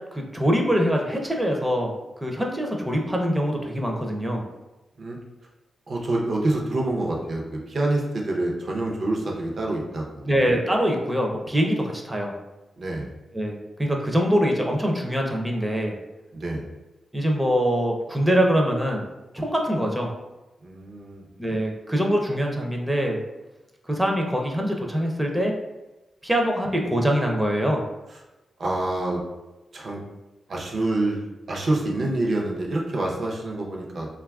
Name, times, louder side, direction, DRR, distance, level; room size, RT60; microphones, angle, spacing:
voice 1, 0.1-1.9 2.2-4.4 10.3-12.3 13.3-15.9 17.1-19.0 19.3-20.1 21.4-23.2 23.9-25.5 26.2-27.8, equal, 10° right, 1 dB, 0.5 m, -23 dB
voice 2, 5.9-10.4 12.8-13.1 16.3-16.6 20.6-21.3 28.6-29.2 29.7-30.0 30.5-31.2 31.5-34.1, right 2 dB, 55° right, -1 dB, 0.6 m, -27 dB
3.0 x 2.3 x 2.3 m, 1.1 s
cardioid pair, 65°, 0 cm